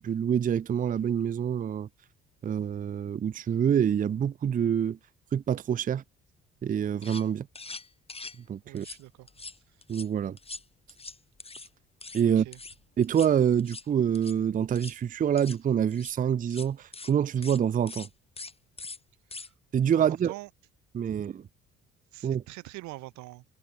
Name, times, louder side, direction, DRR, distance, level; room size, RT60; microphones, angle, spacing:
voice 1, 0.0-1.9 2.4-5.0 5.3-6.0 6.6-7.5 8.5-8.9 9.9-10.4 12.1-12.5 13.0-18.1 19.7-20.3 20.9-21.4 22.2-22.4, right 8 dB, 30° right, 0.5 m, -26 dB
sound 1, 6.7-6.8 7.0-7.3 7.5-8.4 8.8-9.0 9.3-10.1 10.4-11.7 12.0-12.2 12.5-12.8 13.0-13.3 13.6-13.9 14.1-14.4 14.7-15.0 15.4-15.6 15.9-16.1 16.5-16.7 16.9-17.1 17.4-17.6 17.9-18.1 18.4-18.5 18.8-19.0 19.3-19.5, left 3 dB, 20° left, 1.7 m, -42 dB
voice 2, 8.6-9.3 12.2-12.6 19.4-19.5 19.9-20.5 21.1-21.2 22.1-23.4, right 20 dB, 70° right, 0.6 m, -44 dB
supercardioid pair, 70°, 29 cm